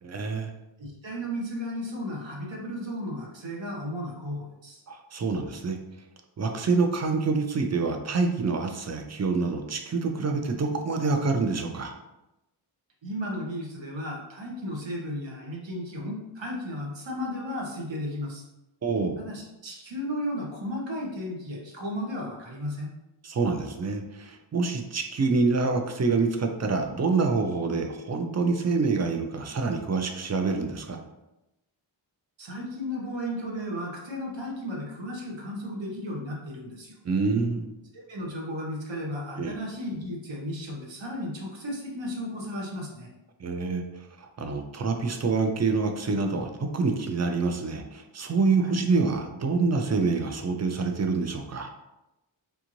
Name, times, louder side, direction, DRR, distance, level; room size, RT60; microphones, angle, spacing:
voice 1, 0.0-0.5 4.9-5.8 6.4-11.9 18.8-19.2 23.2-31.0 37.0-37.7 39.4-39.5 43.4-51.7, right 4 dB, 35° right, 5 dB, 0.5 m, -26 dB
voice 2, 0.8-4.8 13.0-18.4 19.2-22.9 32.4-36.9 37.9-43.1 48.6-48.7, equal, 65° right, -2 dB, 1.0 m, -34 dB
3.5 x 2.5 x 3.0 m, 0.94 s
wide cardioid pair, 80°, 48 cm